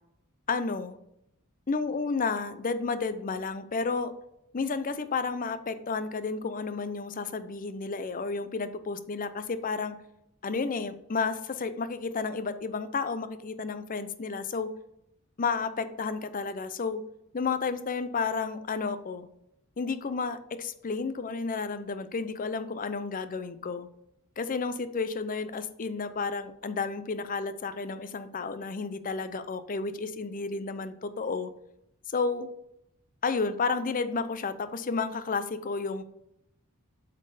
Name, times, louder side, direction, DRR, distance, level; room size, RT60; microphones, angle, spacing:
voice 1, 0.5-1.0 1.7-4.1 4.5-10.0 10.4-14.7 15.4-17.0 17.3-19.3 19.8-23.9 24.4-31.5 32.1-32.5 33.2-36.0, left 4 dB, 40° left, 12 dB, 0.6 m, -31 dB
8.0 x 4.4 x 4.9 m, 0.81 s
head